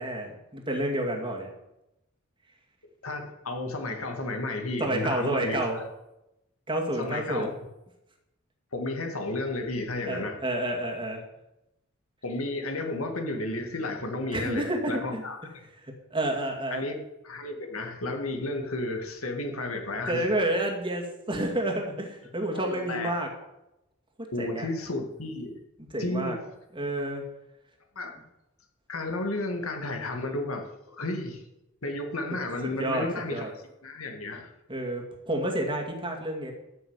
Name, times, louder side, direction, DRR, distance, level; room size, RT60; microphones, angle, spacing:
voice 1, 0.0-1.5 4.8-5.8 6.7-7.5 10.1-11.2 14.3-15.2 16.1-16.8 20.1-23.3 24.4-24.7 25.9-26.4 26.7-27.2 32.6-33.5 34.7-36.5, right 1 dB, 25° right, 1 dB, 2.3 m, -29 dB
voice 2, 3.0-5.8 7.0-7.5 8.7-10.4 12.2-15.4 16.7-17.0 17.2-20.3 22.6-23.1 24.3-25.6 26.0-26.4 28.0-28.1 28.9-31.4 31.8-33.5 33.8-34.5, left 2 dB, 80° left, 4 dB, 2.1 m, -32 dB
13.5 x 6.8 x 8.2 m, 0.91 s
head